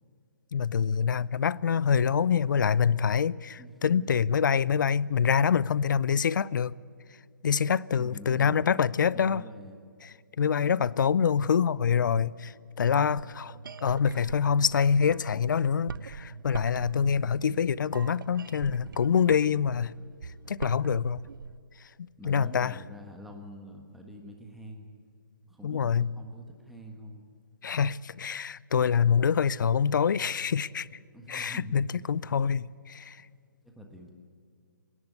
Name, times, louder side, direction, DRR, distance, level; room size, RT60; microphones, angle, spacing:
voice 1, 0.5-6.7 7.4-9.4 10.4-19.9 20.5-21.2 22.0-22.8 25.6-26.1 27.6-30.9 31.3-33.2, left 7 dB, 70° left, 0.5 m, -26 dB
voice 2, 3.6-4.2 7.9-8.7 9.0-9.8 18.8-19.0 22.2-24.9 25.5-27.2 31.1-31.9 32.9-33.1 33.6-34.1, equal, ahead, 1.4 m, -46 dB
sound 1, 12.8-21.6, right 6 dB, 85° right, 0.5 m, -43 dB
25.0 x 11.0 x 9.6 m
hypercardioid pair, 160°, 11 cm